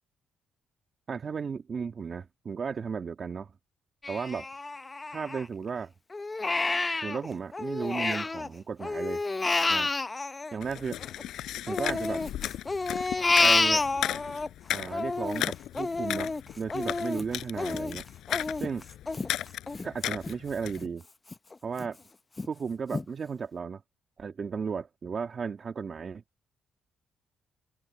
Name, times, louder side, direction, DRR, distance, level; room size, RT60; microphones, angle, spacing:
voice 1, 1.1-3.5 4.1-4.5 5.1-5.9 7.0-9.2 9.7-9.9 10.5-11.0 11.7-12.2 13.4-13.8 14.7-18.0 18.6-18.9 19.8-21.0 21.6-22.0 22.5-23.8 24.2-26.2, right 6 dB, 45° right, 2.1 m, -34 dB
Crying sobbing, 4.0-5.7 6.1-8.5 8.8-11.2 11.7-14.5 14.9-20.3 20.8-20.9 21.3-21.9 22.4-22.5 22.9-23.0, left 3 dB, 25° left, 0.7 m, -29 dB
sound 1, 10.6-20.8, left 12 dB, 80° left, 7.7 m, -35 dB
open air
cardioid pair, 90°, 0 cm